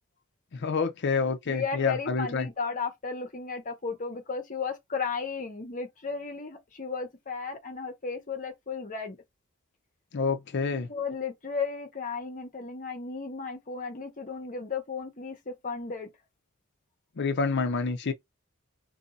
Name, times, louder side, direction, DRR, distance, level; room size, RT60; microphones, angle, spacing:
voice 1, 0.6-2.5 10.1-10.9 17.2-18.1, left 4 dB, 60° left, 0.5 m, -28 dB
voice 2, 1.5-9.2 10.9-16.1, left 5 dB, 40° left, 0.9 m, -34 dB
2.7 x 2.6 x 3.9 m
head